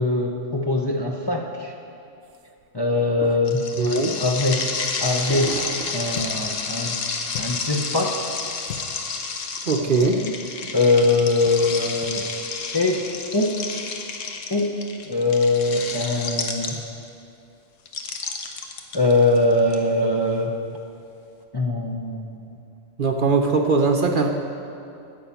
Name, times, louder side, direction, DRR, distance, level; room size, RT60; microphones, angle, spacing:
voice 1, 0.0-1.7 2.7-3.6 4.2-5.7 5.9-7.0 7.4-8.3 10.7-12.3 12.7-13.1 13.3-13.6 14.5-14.8 15.1-16.8 18.9-20.6 21.5-22.6, left 2 dB, 25° left, 0 dB, 0.6 m, -22 dB
sound 1, 2.3-2.4 3.0-3.7 4.0-4.3 5.3-6.9, right 6 dB, 90° right, 1.0 m, -38 dB
sound 2, 3.5-17.1 17.9-19.7, left 5 dB, 85° left, 1.3 m, -30 dB
voice 2, 3.8-4.2 9.6-10.3 23.0-24.3, right 3 dB, 50° right, 3 dB, 0.8 m, -20 dB
sound 3, 6.1-6.5 7.3-7.7 8.6-8.9 10.0-10.3 11.0-11.2 11.5-11.6 12.0-12.2, left 8 dB, 65° left, 0.9 m, -37 dB
10.0 x 7.0 x 8.3 m, 2.6 s
omnidirectional pair, 1.3 m